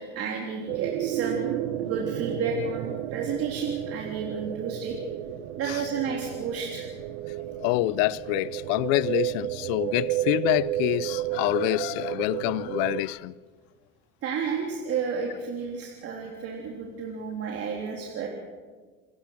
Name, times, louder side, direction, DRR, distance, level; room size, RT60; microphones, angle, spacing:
voice 1, 0.0-5.0 5.6-6.9 14.2-18.3, right 5 dB, 55° right, 3.6 m, -32 dB
sound 1, 0.7-13.0, right 14 dB, 80° right, 1.1 m, -32 dB
voice 2, 7.6-13.3, left 19 dB, 75° left, 0.7 m, -26 dB
28.5 x 15.0 x 6.0 m
supercardioid pair, 95°, 29 cm